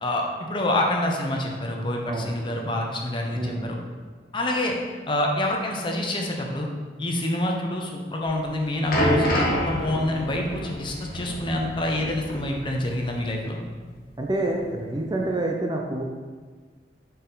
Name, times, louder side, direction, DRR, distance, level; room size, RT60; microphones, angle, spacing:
voice 1, 0.0-3.8 4.3-4.8 5.1-6.7 7.0-13.6, left 1 dB, 30° left, 0 dB, 0.7 m, -27 dB
voice 2, 3.3-3.7 14.2-16.0, right 2 dB, 25° right, 1 dB, 0.5 m, -27 dB
sound 1, 8.3-13.2 13.4-13.6 14.4-14.5, equal, 50° left, 1.1 m, -27 dB
5.8 x 4.2 x 3.9 m, 1.5 s
head